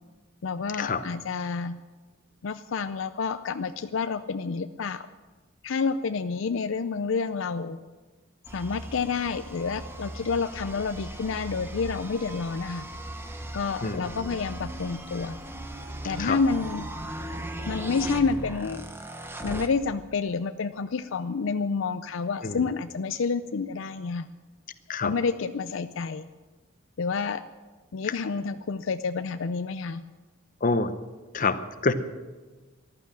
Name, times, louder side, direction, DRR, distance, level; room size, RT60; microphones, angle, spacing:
voice 1, 0.4-1.8 2.4-5.1 5.6-7.8 8.5-12.9 13.5-15.4 16.0-16.9 17.7-18.8 19.4-24.3 25.0-26.3 27.0-27.4 27.9-30.0, left 5 dB, 65° left, 11 dB, 0.5 m, -29 dB
sound 1, 8.5-19.7, right 1 dB, 10° right, 0.9 m, -38 dB
voice 2, 13.8-14.3 16.2-16.4 22.4-22.6 24.9-25.1 30.6-31.0 31.3-31.9, left 3 dB, 40° left, 11 dB, 0.8 m, -27 dB
14.5 x 12.0 x 7.4 m, 1.3 s
head